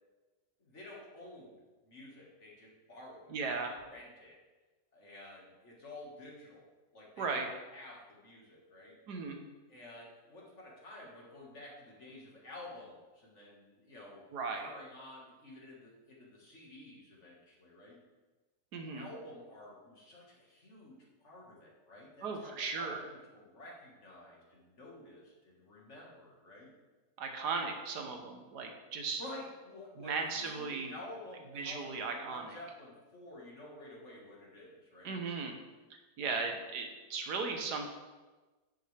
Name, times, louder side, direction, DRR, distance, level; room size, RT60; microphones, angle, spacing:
voice 1, 0.6-4.4 4.9-6.7 6.9-7.4 7.7-9.0 9.7-14.2 14.6-18.0 18.9-26.7 29.2-35.2, left 1 dB, 45° left, -3 dB, 2.1 m, -51 dB
voice 2, 3.3-3.8 7.2-7.5 9.1-9.4 14.3-14.7 18.7-19.1 22.2-23.0 27.2-29.2 30.0-30.9 31.5-32.5 35.0-35.5 36.2-37.9, right 4 dB, 85° right, 3 dB, 1.6 m, -37 dB
10.5 x 6.4 x 3.4 m, 1.2 s
omnidirectional pair, 1.7 m